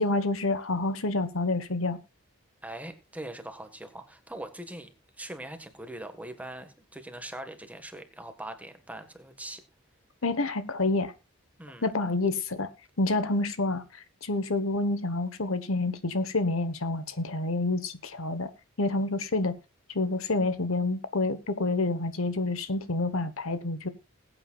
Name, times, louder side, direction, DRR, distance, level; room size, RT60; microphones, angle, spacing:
voice 1, 0.0-2.0 10.2-11.1 11.8-12.7 13.0-13.8 14.2-18.5 18.8-19.5 19.9-23.9, left 2 dB, 70° left, 1.2 m, -28 dB
voice 2, 2.6-4.9 5.2-9.6 11.6-11.9, right 1 dB, 5° right, 1.5 m, -41 dB
21.0 x 8.7 x 2.4 m
head